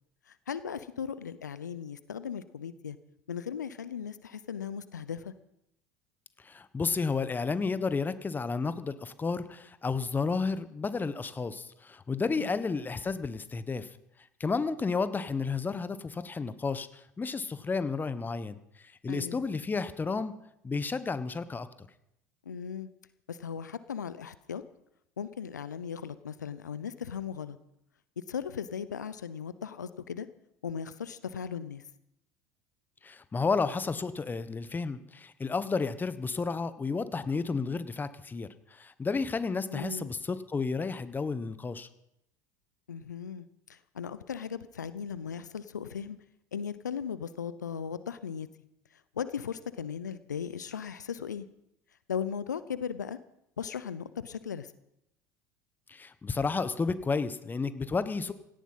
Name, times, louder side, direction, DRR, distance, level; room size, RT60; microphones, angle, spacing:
voice 1, 0.3-3.0 3.3-5.3 12.3-12.5 19.1-19.4 22.5-22.9 23.3-24.6 25.2-27.6 28.2-30.3 30.6-31.8 39.7-40.1 42.9-46.2 46.5-48.5 48.9-51.5 52.1-53.2 53.6-54.7, left 7 dB, 85° left, 15 dB, 0.7 m, -37 dB
voice 2, 6.4-13.9 14.4-20.3 20.6-21.9 33.0-41.9 55.9-58.3, left 4 dB, 20° left, 13 dB, 1.2 m, -32 dB
17.5 x 14.0 x 5.7 m, 0.80 s
figure-of-eight pair, 70°, 9 cm